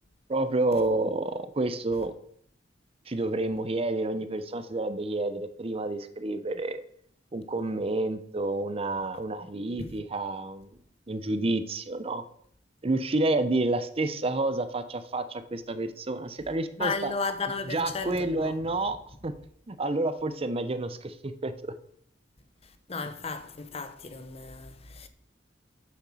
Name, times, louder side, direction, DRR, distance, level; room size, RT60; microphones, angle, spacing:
voice 1, 0.3-2.1 3.1-6.8 7.3-10.7 11.1-12.2 12.8-17.1 17.7-19.0 19.2-19.3 19.7-21.7, right 2 dB, 35° right, 0.6 m, -29 dB
voice 2, 16.8-18.5 22.9-25.1, left 4 dB, 35° left, 0.8 m, -34 dB
7.8 x 7.2 x 6.1 m
head